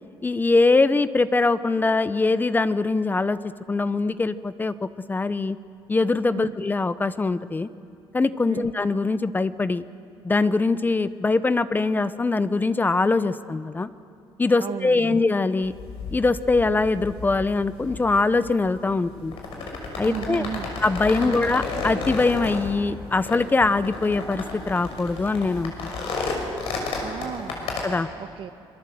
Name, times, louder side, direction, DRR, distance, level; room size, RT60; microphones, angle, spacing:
voice 1, 0.2-3.4 3.7-5.6 5.9-7.7 8.1-9.8 10.2-13.9 14.4-15.7 16.1-19.4 20.0-20.4 20.8-26.1 27.8-28.1, left 3 dB, 20° left, 14 dB, 0.7 m, -22 dB
voice 2, 14.6-15.2 20.0-20.7 21.2-21.3 27.0-27.7 28.2-28.5, right 8 dB, 65° right, 10 dB, 1.3 m, -34 dB
sound 1, 15.6-27.8, left 3 dB, 85° left, 5.9 m, -33 dB
26.5 x 23.0 x 7.8 m, 2.5 s
cardioid pair, 120°, 9 cm